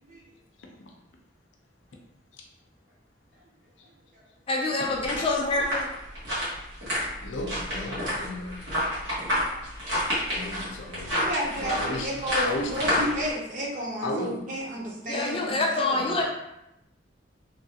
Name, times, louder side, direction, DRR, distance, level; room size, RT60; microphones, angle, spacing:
voice 1, 0.6-0.9 2.4-2.5 3.8-3.9 4.8-5.4 7.2-8.8 10.3-13.2 14.0-14.5, left 1 dB, 80° left, 1 dB, 0.5 m, -35 dB
voice 2, 4.5-5.9 15.1-16.2, left 2 dB, 30° left, 0 dB, 0.4 m, -26 dB
sound 1, 4.9-13.3, left 1 dB, 90° right, 1.4 m, -29 dB
voice 3, 11.2-16.1, equal, 45° right, -3 dB, 0.7 m, -32 dB
3.1 x 2.3 x 2.8 m, 0.87 s
head